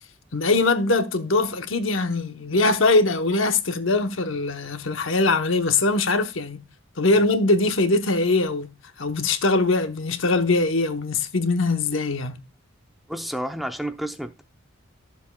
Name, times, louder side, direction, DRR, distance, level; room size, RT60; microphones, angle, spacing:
voice 1, 0.3-6.7 7.0-12.4, left 3 dB, 65° left, 1.0 m, -22 dB
voice 2, 13.1-14.4, right 1 dB, ahead, 0.6 m, -30 dB
14.0 x 7.3 x 2.3 m
head